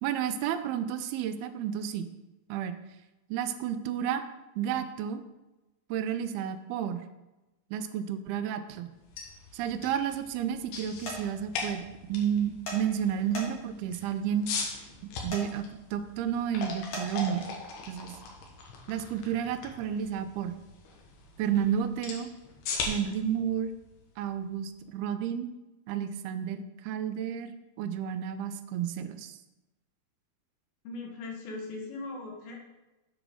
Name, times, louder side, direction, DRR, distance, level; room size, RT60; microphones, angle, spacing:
voice 1, 0.0-2.1 2.5-2.8 3.3-4.2 4.6-5.2 5.9-7.0 7.7-8.9 9.5-14.5 15.2-15.6 15.9-17.5 17.9-18.2 18.9-20.6 21.4-22.3 22.9-23.7 24.2-25.5 25.9-29.4, right 9 dB, 85° right, 9 dB, 2.5 m, -31 dB
sound 1, 8.9-24.9, left 4 dB, 90° left, 3.3 m, -41 dB
sound 2, 11.0-11.2 12.7-12.8 13.3-13.8 15.3-15.4 16.9-17.1, left 1 dB, 45° left, 2.3 m, -36 dB
voice 2, 30.8-32.6, left 3 dB, 70° left, 0 dB, 3.2 m, -39 dB
7.9 x 5.1 x 6.2 m, 1.0 s
omnidirectional pair, 4.5 m